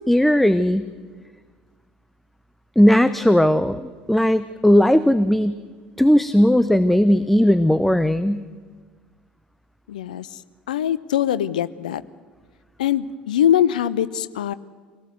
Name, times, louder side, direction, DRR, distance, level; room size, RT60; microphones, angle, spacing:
voice 1, 0.1-0.9 2.8-5.6 6.0-8.4, equal, 5° left, 13 dB, 0.8 m, -17 dB
voice 2, 9.9-10.4 10.7-12.0 12.8-14.5, left 10 dB, 70° left, 16 dB, 0.8 m, -22 dB
26.0 x 17.5 x 8.0 m, 1.5 s
figure-of-eight pair, 65°, 5 cm